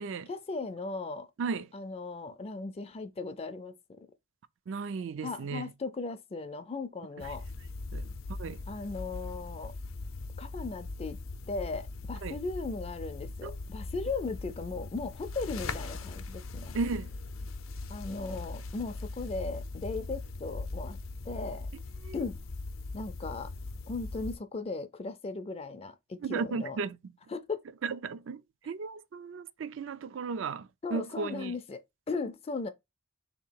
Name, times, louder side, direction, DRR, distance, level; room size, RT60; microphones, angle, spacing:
voice 1, 0.3-1.3 1.7-3.8 5.2-7.5 8.7-9.7 10.4-11.2 11.5-16.8 17.9-21.0 21.2-21.7 22.1-22.4 22.9-23.5 23.9-26.8 27.3-27.6 30.8-32.7, left 3 dB, 30° left, 0.4 m, -37 dB
voice 2, 4.7-5.7 7.2-7.3 7.9-8.0 8.4-8.6 12.2-12.4 13.4-13.6 16.7-17.1 22.0-22.3 26.2-27.1 27.8-31.5, right 4 dB, 65° right, 0.4 m, -35 dB
sound 1, 7.2-24.4, left 3 dB, 85° left, 0.6 m, -40 dB
3.5 x 2.9 x 4.5 m
head